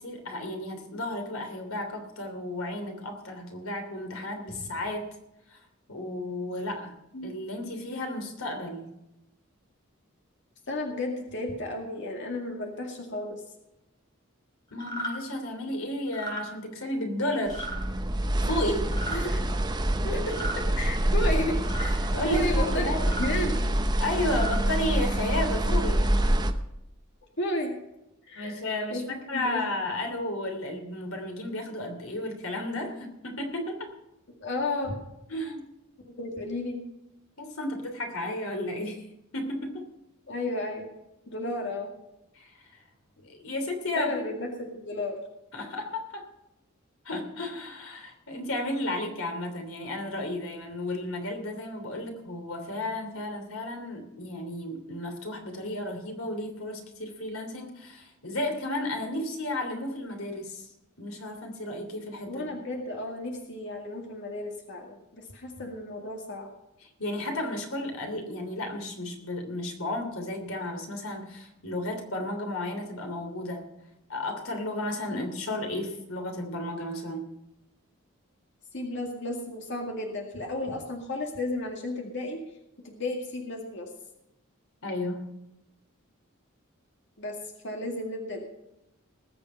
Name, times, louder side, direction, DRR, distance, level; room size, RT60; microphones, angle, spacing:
voice 1, 0.0-5.1 5.5-5.6 5.9-6.9 7.2-8.9 14.7-17.7 18.4-18.9 22.1-23.1 24.0-26.0 28.3-33.9 35.3-35.6 37.4-39.0 39.3-39.8 42.3-42.5 43.2-44.1 45.5-46.2 47.0-60.7 61.0-62.4 66.8-73.6 74.1-77.2 84.8-85.3, left 1 dB, 85° left, 4 dB, 3.1 m, -33 dB
voice 2, 10.7-13.4 19.1-19.4 20.0-22.0 22.3-23.6 27.4-27.8 28.3-28.6 28.9-29.6 34.4-35.0 36.1-36.8 40.3-40.9 41.3-41.9 44.0-45.2 62.3-66.5 75.1-75.2 78.7-82.4 82.8-83.9 87.2-87.4 87.6-88.5, left 2 dB, 60° left, 2 dB, 2.1 m, -33 dB
sound 1, 14.8-15.1 16.1-16.4 17.5-17.8 18.8-19.2 20.3-20.6 21.6-21.9 23.0-23.3 24.2-24.6, right 1 dB, 20° left, 4.2 m, -35 dB
sound 2, 17.5-26.5, right 1 dB, 20° right, 0.8 m, -26 dB
20.0 x 7.0 x 5.6 m, 0.88 s
head